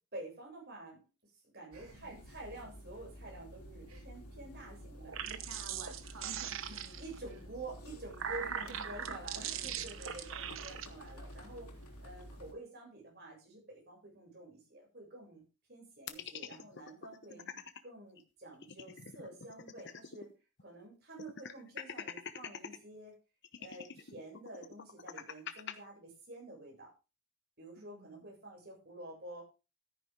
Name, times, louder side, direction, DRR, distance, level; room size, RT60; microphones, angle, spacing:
voice 1, 0.1-1.0 1.5-5.2 6.7-11.7 12.0-17.4 17.8-20.3 20.6-23.1 23.6-26.9 27.6-29.4, right 2 dB, 45° right, -1 dB, 7.7 m, -49 dB
sound 1, 1.7-12.5, equal, 90° left, 3.3 m, -51 dB
voice 2, 1.7-2.4 3.9-4.0 5.2-7.5 8.4-10.0 10.4-10.7 17.3-17.7 27.8-28.3, right 2 dB, 85° right, 0 dB, 3.0 m, -55 dB
sound 2, 4.9-7.2 7.9-10.9, right 8 dB, 60° right, 1.0 m, -40 dB
sound 3, 16.1-17.8 18.2-18.3 18.5-20.3 20.6-20.7 21.2-22.8 23.4-25.7, left 6 dB, 50° left, 1.1 m, -45 dB
13.5 x 10.0 x 3.8 m, 0.30 s
head